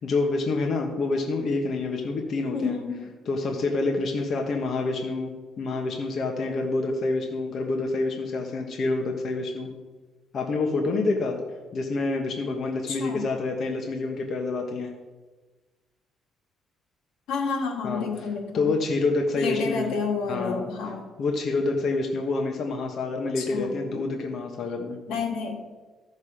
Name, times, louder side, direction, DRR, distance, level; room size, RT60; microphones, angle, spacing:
voice 1, 0.0-2.8 3.2-9.7 10.3-11.4 11.7-14.9 17.8-18.3 18.5-20.0 20.3-20.6 21.2-25.0, left 3 dB, 50° left, 2 dB, 1.3 m, -27 dB
voice 2, 2.5-3.1 12.9-13.2 17.3-18.7 19.4-21.1 23.4-24.1 25.1-25.6, left 5 dB, 90° left, 1 dB, 2.1 m, -30 dB
14.0 x 6.5 x 5.0 m, 1.3 s
cardioid pair, 125°, 0 cm